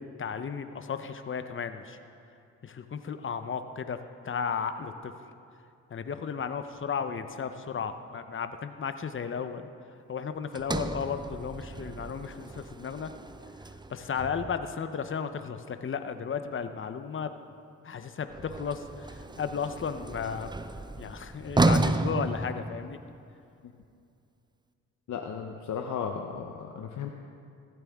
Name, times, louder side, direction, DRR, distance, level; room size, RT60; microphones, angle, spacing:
voice 1, 0.2-2.0 2.6-4.0 4.2-5.1 5.9-9.7 10.1-13.1 13.9-17.3 17.8-20.5 21.0-23.0, left 6 dB, 40° left, 9 dB, 0.8 m, -34 dB
Sliding door, 10.5-14.8 18.3-23.2, right 2 dB, 15° right, 0.5 m, -32 dB
voice 2, 25.1-27.1, left 7 dB, 70° left, 3 dB, 0.8 m, -35 dB
15.5 x 12.5 x 3.6 m, 2.5 s
cardioid pair, 60°, 31 cm